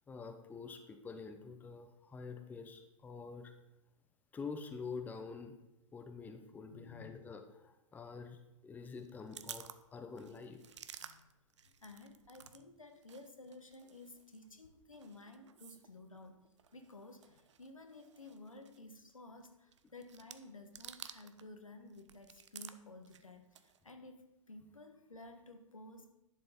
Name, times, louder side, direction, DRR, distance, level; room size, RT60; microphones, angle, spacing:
voice 1, 0.1-3.5 4.3-5.5 5.9-9.7 9.9-10.8, left 5 dB, 10° left, 6 dB, 0.7 m, -47 dB
voice 2, 6.7-7.2 11.0-11.3 11.6-16.4 16.7-26.1, left 2 dB, 80° left, 6 dB, 1.2 m, -54 dB
sound 1, 9.0-12.6 12.9-21.5 21.8-23.9, right 8 dB, 60° right, 0.6 m, -54 dB
11.0 x 6.8 x 3.9 m, 0.90 s
figure-of-eight pair, 105°, 17 cm